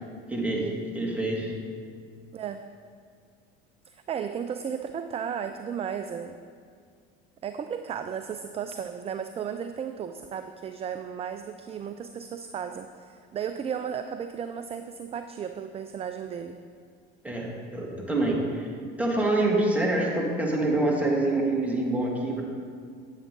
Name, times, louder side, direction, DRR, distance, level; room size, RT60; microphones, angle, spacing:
voice 1, 0.3-0.7 0.9-1.5 17.2-18.7 19.0-22.4, right 2 dB, 5° right, -2 dB, 2.1 m, -26 dB
voice 2, 2.3-2.6 3.9-6.4 7.4-16.6, right 7 dB, 20° right, 9 dB, 0.3 m, -34 dB
9.0 x 7.7 x 3.8 m, 2.1 s
hypercardioid pair, 70°, 29 cm